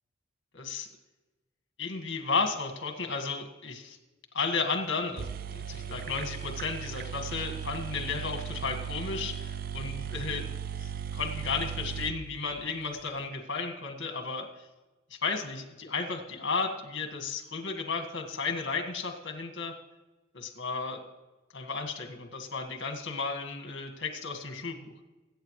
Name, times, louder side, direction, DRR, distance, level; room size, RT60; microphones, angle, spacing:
voice 1, 0.5-0.9 1.8-4.0 4.3-14.5 15.1-19.7 20.3-21.0 21.5-24.9, left 4 dB, 60° left, 4 dB, 1.7 m, -34 dB
sound 1, 4.9-5.0 5.2-13.0, right 8 dB, 45° right, 0.4 m, -37 dB
22.0 x 8.9 x 3.2 m, 1.2 s
head